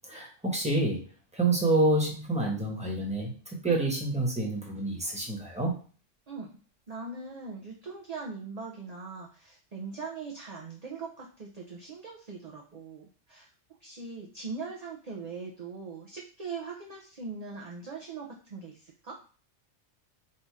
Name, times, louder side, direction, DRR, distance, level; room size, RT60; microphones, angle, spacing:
voice 1, 0.0-1.1 1.3-5.7, right 2 dB, 5° right, -2 dB, 1.2 m, -28 dB
voice 2, 6.3-6.6 6.9-13.5 13.8-19.2, right 4 dB, 40° right, -2 dB, 0.6 m, -41 dB
4.3 x 2.6 x 4.8 m, 0.39 s
omnidirectional pair, 1.3 m